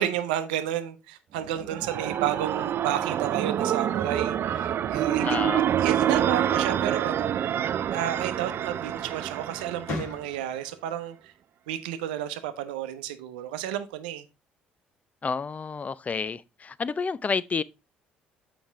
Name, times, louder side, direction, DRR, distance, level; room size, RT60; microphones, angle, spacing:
voice 1, 0.0-5.4 5.8-7.4 7.9-11.3 11.7-14.3, right 11 dB, 80° right, 0.7 m, -31 dB
sound 1, 1.4-10.3, right 10 dB, 50° right, 0.4 m, -27 dB
voice 2, 5.2-5.7 15.2-17.6, left 5 dB, 30° left, 0.5 m, -30 dB
sound 2, 6.0-7.4 8.9-9.1 9.5-10.7, left 2 dB, 65° left, 2.1 m, -39 dB
7.2 x 5.0 x 3.4 m
hypercardioid pair, 55°, 5 cm